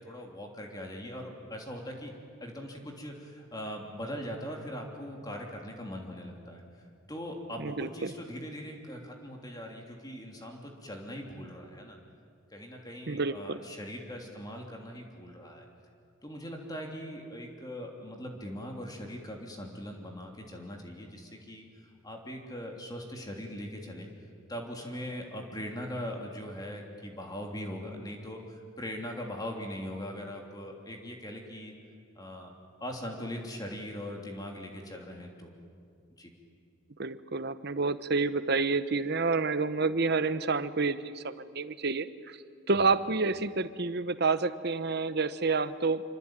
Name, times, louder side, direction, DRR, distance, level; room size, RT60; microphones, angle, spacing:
voice 1, 0.0-2.1 2.4-6.6 7.1-12.0 12.5-15.7 16.2-21.6 22.0-24.1 24.5-31.7 32.1-32.5 32.8-35.5 36.2-36.3 42.7-42.9, equal, 20° left, 1 dB, 3.2 m, -40 dB
voice 2, 7.6-8.1 13.1-13.6 37.0-42.4 42.7-46.0, right 4 dB, 50° right, 13 dB, 1.0 m, -29 dB
26.0 x 25.0 x 9.0 m, 2.3 s
head